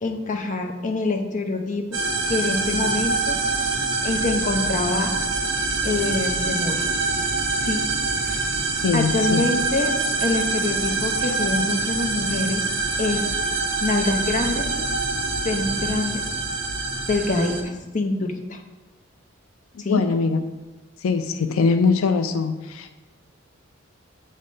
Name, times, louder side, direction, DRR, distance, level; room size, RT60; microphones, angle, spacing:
voice 1, 0.0-2.0 2.3-3.4 4.0-5.1 5.8-6.9 7.6-7.8 8.2-8.5 8.9-9.9 10.2-12.6 13.0-13.2 13.8-14.7 15.4-16.2 17.1-18.6 19.8-20.0, left 3 dB, 40° left, 3 dB, 0.7 m, -25 dB
sound 1, 1.9-17.6, right 3 dB, 70° right, 1.1 m, -25 dB
voice 2, 8.8-9.5 19.9-20.4 21.0-23.0, left 4 dB, 90° left, 8 dB, 0.4 m, -22 dB
7.6 x 3.2 x 5.4 m, 1.1 s
head